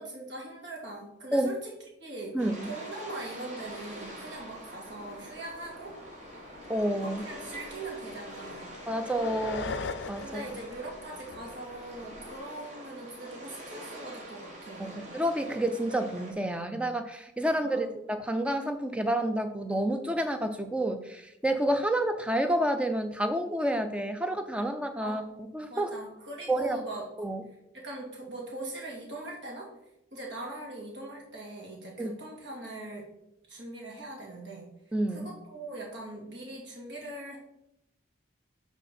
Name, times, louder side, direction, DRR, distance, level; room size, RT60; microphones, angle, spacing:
voice 1, 0.0-1.7 2.0-2.4 2.6-6.0 7.0-8.8 10.2-15.0 17.4-17.9 25.0-25.2 25.7-27.1 27.7-29.7 30.1-33.1 33.5-34.7 35.1-37.4, right 2 dB, 65° right, -2 dB, 2.2 m, -41 dB
voice 2, 2.3-2.7 6.7-7.2 8.9-9.7 10.1-10.3 14.8-25.2 25.5-25.9 26.5-26.8 27.2-27.4 32.0-32.1 34.9-35.3, right 1 dB, 5° right, 7 dB, 0.5 m, -29 dB
sound 1, 2.4-16.3, right 1 dB, 35° right, 1.6 m, -45 dB
sound 2, 4.1-4.2 4.4-5.0 5.4-12.4, left 4 dB, 65° left, 0.5 m, -42 dB
9.7 x 3.6 x 4.2 m, 0.84 s
head